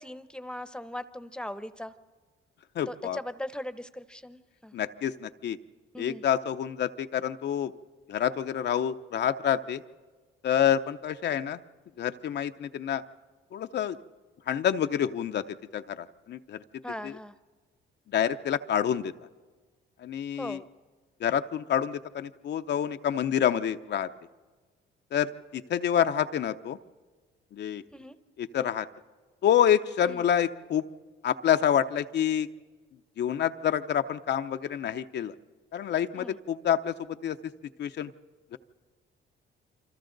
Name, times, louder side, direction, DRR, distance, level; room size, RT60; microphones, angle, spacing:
voice 1, 0.0-1.9 2.9-4.8 5.9-6.2 16.8-17.3 20.4-20.6 27.9-28.1 30.0-30.2 36.1-36.4, left 1 dB, 5° left, 13 dB, 0.9 m, -39 dB
voice 2, 2.8-3.2 4.7-5.6 6.0-7.7 8.1-9.8 10.4-11.6 12.0-13.0 13.5-14.0 14.5-15.4 15.7-16.6 17.0-17.1 18.1-19.1 20.0-20.6 21.2-24.1 25.1-26.8 27.5-27.8 28.4-28.9 29.4-30.8 31.2-32.5 33.2-35.3 35.7-36.9 37.2-37.4 37.8-38.1 38.5-38.6, left 9 dB, 60° left, 8 dB, 0.6 m, -27 dB
27.5 x 25.5 x 3.9 m, 1.4 s
cardioid pair, 90°, 20 cm